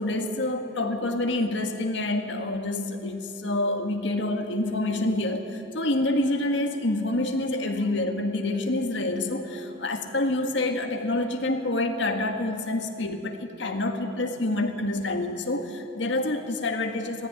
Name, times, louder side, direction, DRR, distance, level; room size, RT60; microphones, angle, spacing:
voice 1, 0.0-17.3, left 2 dB, 85° left, 4 dB, 1.8 m, -27 dB
19.5 x 15.0 x 9.5 m, 2.6 s
head